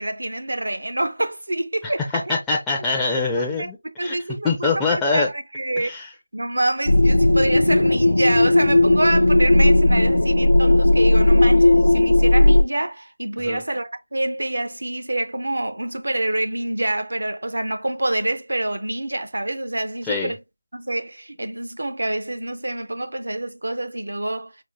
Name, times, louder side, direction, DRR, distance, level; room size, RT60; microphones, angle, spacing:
voice 1, 0.0-2.3 3.4-3.7 4.0-5.9 6.3-20.4 20.7-24.5, right 1 dB, 80° right, 0.6 m, -26 dB
voice 2, 2.3-4.2 4.4-5.3 5.8-6.1 13.4-13.6 20.0-20.3, left 4 dB, 5° left, 0.4 m, -24 dB
sound 1, 6.9-12.6, left 1 dB, 85° left, 0.4 m, -16 dB
4.8 x 2.1 x 3.0 m
figure-of-eight pair, 165°, 0 cm